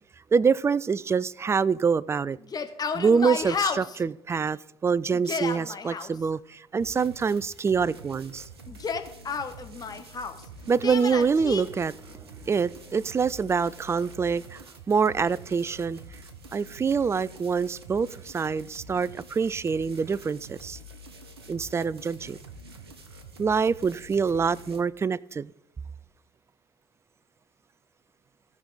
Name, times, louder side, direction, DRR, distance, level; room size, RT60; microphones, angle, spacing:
voice 1, 0.3-2.4 2.9-8.4 10.7-16.0 16.5-20.8 21.5-22.4 23.4-25.5, right 5 dB, 20° right, 0.3 m, -25 dB
Yell, 2.4-4.0 5.1-6.1 8.7-10.4 10.8-11.6, left 5 dB, 30° left, 1.1 m, -31 dB
sound 1, 6.8-24.8, right 2 dB, 80° right, 0.8 m, -46 dB
16.5 x 5.9 x 4.0 m
figure-of-eight pair, 50°, 13 cm